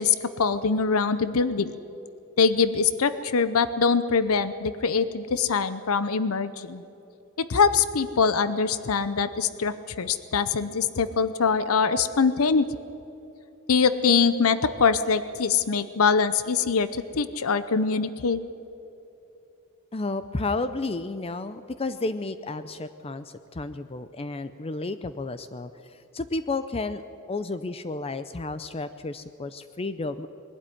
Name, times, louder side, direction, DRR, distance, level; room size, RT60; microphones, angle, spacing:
voice 1, 0.0-1.8 2.4-6.8 7.4-12.6 13.7-18.4, left 5 dB, 70° left, 14 dB, 0.7 m, -23 dB
voice 2, 19.9-27.0 27.3-30.3, left 3 dB, 25° left, 12 dB, 0.5 m, -32 dB
21.5 x 12.0 x 10.0 m, 2.9 s
head